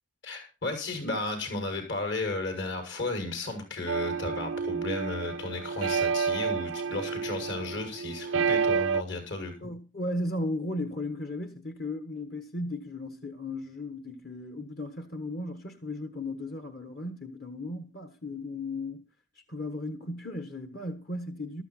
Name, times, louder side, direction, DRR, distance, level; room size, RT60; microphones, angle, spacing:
voice 1, 0.2-9.5, left 2 dB, 65° left, 6.4 m, -34 dB
sound 1, 3.9-9.0, right 5 dB, 85° right, 0.6 m, -29 dB
voice 2, 9.6-19.0 19.3-21.6, left 2 dB, 50° left, 1.3 m, -36 dB
13.5 x 13.5 x 4.3 m
head